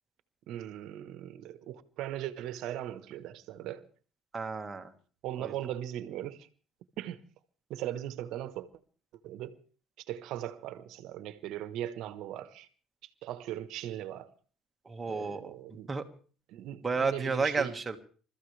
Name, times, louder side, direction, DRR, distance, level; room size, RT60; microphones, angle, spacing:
voice 1, 0.5-3.9 5.2-6.5 7.0-7.2 7.7-8.7 9.2-9.6 10.0-12.7 13.2-14.3 15.0-15.9 16.5-17.7, right 12 dB, 65° right, 1.3 m, -39 dB
voice 2, 4.3-4.9 5.4-5.5 14.8-15.5 15.9-16.0 16.8-18.0, right 4 dB, 20° right, 1.7 m, -31 dB
27.5 x 14.0 x 3.4 m
cardioid pair, 130°, 0 cm